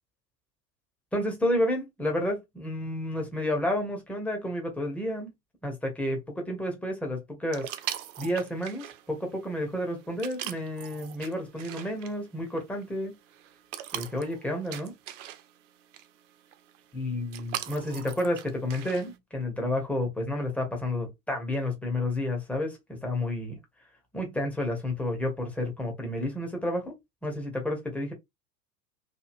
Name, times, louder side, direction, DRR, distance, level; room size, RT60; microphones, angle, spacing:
voice 1, 1.1-5.3 5.6-7.7 8.2-13.2 13.9-14.9 17.0-23.6 24.1-26.9 27.2-28.1, left 1 dB, 5° left, 0.4 m, -30 dB
sound 1, 7.5-19.2, right 12 dB, 50° right, 0.5 m, -42 dB
2.9 x 2.5 x 2.4 m
figure-of-eight pair, 90°, 50 cm